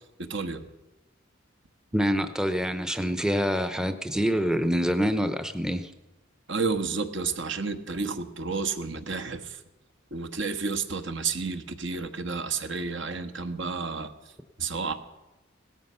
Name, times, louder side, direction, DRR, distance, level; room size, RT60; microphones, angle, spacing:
voice 1, 0.2-0.7 6.5-9.6 10.1-14.1 14.6-14.9, right 4 dB, 65° right, 8 dB, 1.2 m, -31 dB
voice 2, 1.9-5.9, equal, 5° right, 9 dB, 0.7 m, -26 dB
17.5 x 13.5 x 5.6 m, 1.1 s
head